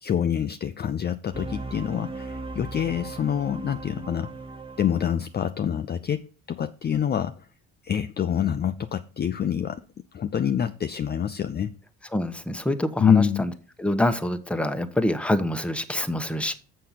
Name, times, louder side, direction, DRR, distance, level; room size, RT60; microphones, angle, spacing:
voice 1, 0.0-4.3 4.8-7.5 7.8-9.8 10.1-11.7 13.0-13.4, left 8 dB, 30° left, 0.5 m, -26 dB
sound 1, 1.3-5.3, right 3 dB, 15° right, 1.4 m, -37 dB
voice 2, 12.1-13.5 13.8-16.5, left 1 dB, 5° left, 1.0 m, -26 dB
6.6 x 6.2 x 5.7 m
supercardioid pair, 70°, 34 cm